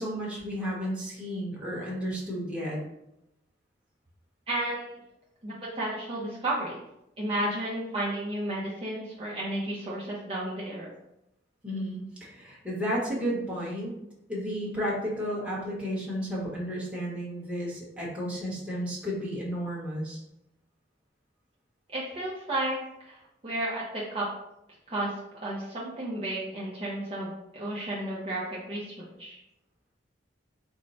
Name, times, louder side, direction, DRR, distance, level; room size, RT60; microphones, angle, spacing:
voice 1, 0.0-2.8 11.6-13.9 14.3-20.2, equal, 5° right, -6 dB, 1.1 m, -32 dB
voice 2, 4.5-5.0 5.4-6.8 7.2-10.9 21.9-22.8 23.0-24.2 24.9-28.4 28.7-29.4, right 1 dB, 30° right, -7 dB, 0.7 m, -32 dB
4.4 x 2.1 x 4.0 m, 0.83 s
head